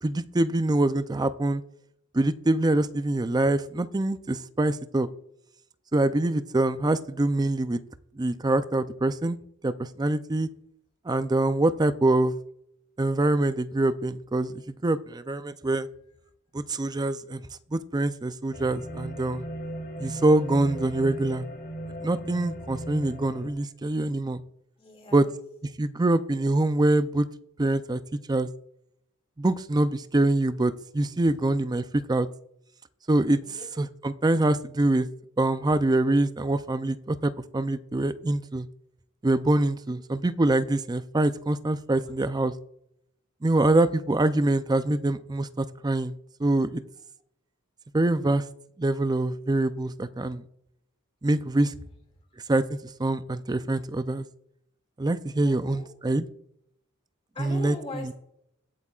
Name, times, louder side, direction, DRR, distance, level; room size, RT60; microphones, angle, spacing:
voice 1, 0.0-1.6 2.1-5.1 5.9-7.8 8.2-9.4 9.6-10.5 11.1-12.4 13.0-15.9 16.5-17.4 17.7-19.5 20.0-21.5 22.0-24.4 25.1-25.3 25.8-27.3 27.6-28.5 29.4-32.3 33.1-33.4 33.8-35.1 35.4-38.7 39.2-42.5 43.4-46.8 47.9-48.4 48.8-50.4 51.2-51.7 52.5-54.2 55.0-56.3 57.4-57.8, right 2 dB, 20° right, 12 dB, 0.4 m, -25 dB
sound 1, 18.5-23.5, right 1 dB, 45° left, 2.6 m, -37 dB
voice 2, 24.8-25.3 33.4-33.6 42.0-42.1 55.4-55.9 57.3-58.1, left 2 dB, 25° left, 2 dB, 2.3 m, -41 dB
22.0 x 8.1 x 2.4 m, 0.76 s
head